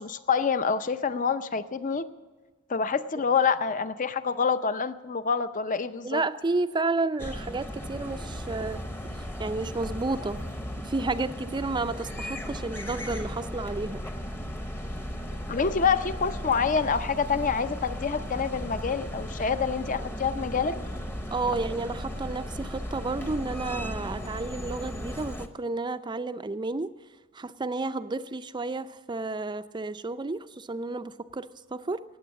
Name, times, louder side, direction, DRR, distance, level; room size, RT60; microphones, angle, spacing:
voice 1, 0.0-2.1 2.7-6.2 15.5-20.8, left 5 dB, 40° left, 12 dB, 0.6 m, -27 dB
voice 2, 6.0-8.8 9.4-10.4 10.8-14.0 21.3-26.9 27.3-32.0, right 3 dB, 20° right, 12 dB, 0.5 m, -31 dB
sound 1, 7.2-25.5, equal, 10° left, 0.8 m, -36 dB
sound 2, 7.9-11.9, equal, 80° left, 2.0 m, -56 dB
19.0 x 7.8 x 7.4 m, 1.3 s
head